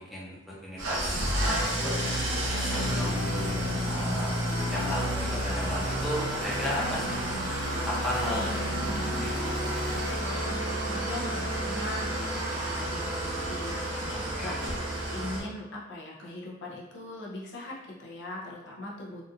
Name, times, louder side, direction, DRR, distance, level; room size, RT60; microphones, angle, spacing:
voice 1, 0.0-2.0 2.5-4.3 4.7-7.2 7.9-8.6 9.2-9.4 14.1-14.6, left 1 dB, ahead, -7 dB, 0.7 m, -35 dB
Engine starting / Idling, 0.8-15.4, equal, 90° right, 0.9 m, -30 dB
sound 1, 2.1-10.5, right 1 dB, 65° right, 1.4 m, -39 dB
voice 2, 8.2-9.8 10.1-19.2, left 2 dB, 60° left, -3 dB, 0.7 m, -40 dB
3.9 x 2.4 x 2.6 m, 0.99 s
head